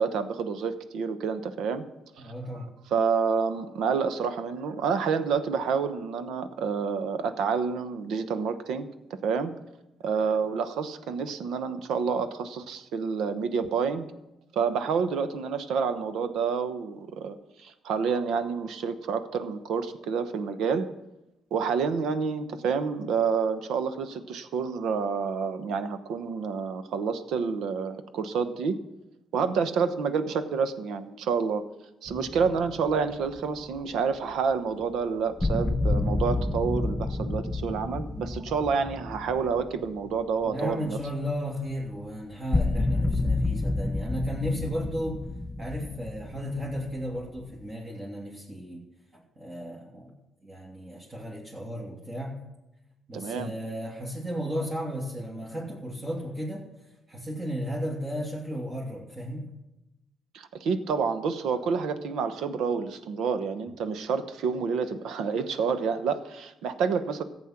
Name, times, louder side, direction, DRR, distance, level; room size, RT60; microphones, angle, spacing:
voice 1, 0.0-1.8 2.2-2.3 2.9-8.9 9.2-9.5 10.0-14.1 14.5-20.9 21.5-28.8 29.3-31.6 32.0-41.0 53.1-53.5 60.3-67.2, right 5 dB, 80° right, 11 dB, 1.0 m, -28 dB
voice 2, 2.2-2.7 40.4-45.2 45.6-48.8 49.1-50.1 50.4-52.4 53.1-56.6 57.1-59.5, equal, 30° right, -4 dB, 2.7 m, -34 dB
sound 1, 32.1-33.4 33.8-33.9 34.8-34.9 35.4-40.7 41.1-41.2 41.7-41.8 42.5-47.7, left 2 dB, 15° left, 0.9 m, -30 dB
14.5 x 8.1 x 6.0 m, 0.95 s
cardioid pair, 90°, 0 cm